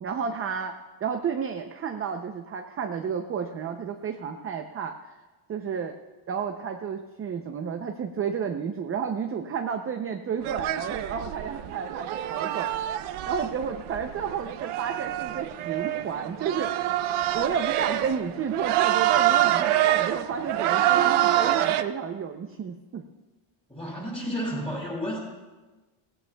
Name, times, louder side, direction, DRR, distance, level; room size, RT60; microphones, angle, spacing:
voice 1, 0.0-4.9 5.5-5.9 6.3-12.7 13.3-16.8 17.3-23.0, right 7 dB, 30° right, 5 dB, 0.5 m, -31 dB
sound 1, 10.4-21.8, right 13 dB, 85° right, 0.7 m, -26 dB
voice 2, 23.7-25.2, equal, 10° left, -4 dB, 5.2 m, -31 dB
18.0 x 17.0 x 2.2 m, 1.2 s
cardioid pair, 175°, 49 cm